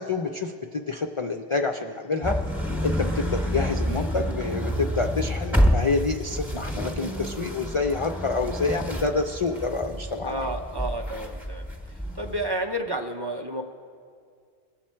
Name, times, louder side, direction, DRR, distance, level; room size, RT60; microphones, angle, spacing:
voice 1, 0.1-2.4 2.8-10.3, left 4 dB, 55° left, 5 dB, 0.3 m, -27 dB
sound 1, 2.2-12.5, equal, ahead, 1.1 m, -28 dB
voice 2, 10.2-11.6 12.1-13.6, right 1 dB, 30° right, 4 dB, 0.5 m, -30 dB
21.0 x 7.4 x 4.4 m, 2.2 s
omnidirectional pair, 1.1 m